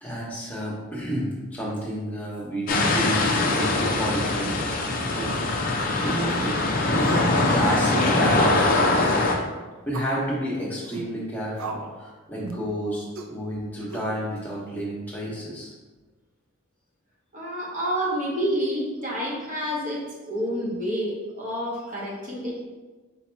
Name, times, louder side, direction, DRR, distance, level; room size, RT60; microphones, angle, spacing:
voice 1, 0.0-5.3 6.0-6.5 6.9-9.1 9.9-15.7, equal, 10° left, -6 dB, 1.0 m, -30 dB
sound 1, 2.7-9.4, left 2 dB, 40° left, 0.5 m, -22 dB
sound 2, 6.1-6.4 7.0-7.3 7.6-7.7 8.0-8.3 9.1-9.3 9.9-10.2 10.8-11.1 11.6-12.0 12.4-12.7 13.1-13.3 13.9-14.4, right 3 dB, 75° right, 0.5 m, -37 dB
voice 2, 17.3-22.6, equal, 35° right, -4 dB, 1.1 m, -28 dB
4.1 x 2.8 x 4.5 m, 1.3 s
head